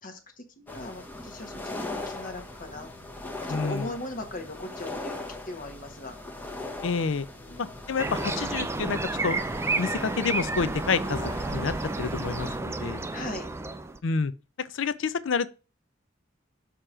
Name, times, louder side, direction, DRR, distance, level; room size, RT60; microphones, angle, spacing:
voice 1, 0.0-2.9 3.4-6.2 7.4-7.6 13.1-13.5, left 1 dB, 45° left, 1.3 m, -39 dB
sound 1, 0.7-12.6, left 2 dB, 10° left, 0.8 m, -39 dB
voice 2, 3.5-3.9 6.8-7.2 7.6-9.4 9.8-13.1 14.0-14.3 14.6-15.5, left 5 dB, 75° left, 0.5 m, -29 dB
sound 2, 8.0-14.0, right 3 dB, 15° right, 0.4 m, -31 dB
6.7 x 2.9 x 4.9 m
head